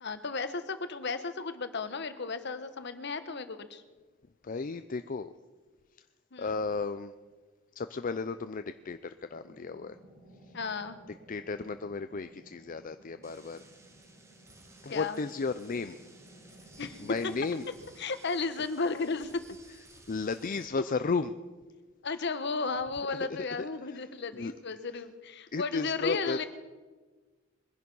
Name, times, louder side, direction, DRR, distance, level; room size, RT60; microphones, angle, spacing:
voice 1, 0.0-3.8 6.3-6.5 10.5-11.0 14.9-15.2 16.8-17.0 18.0-19.3 22.0-26.4, left 4 dB, 60° left, 11 dB, 1.2 m, -34 dB
voice 2, 4.4-5.3 6.4-7.1 7.8-10.0 10.5-10.6 11.3-13.6 14.8-16.0 17.0-17.6 20.1-21.4 23.8-24.0 24.3-24.5 25.5-26.4, left 4 dB, 45° left, 11 dB, 0.5 m, -34 dB
sound 1, 9.3-18.1, right 1 dB, 70° right, 6.9 m, -57 dB
sound 2, 13.2-20.7, right 2 dB, 15° right, 1.7 m, -57 dB
22.0 x 11.0 x 5.5 m, 1.3 s
head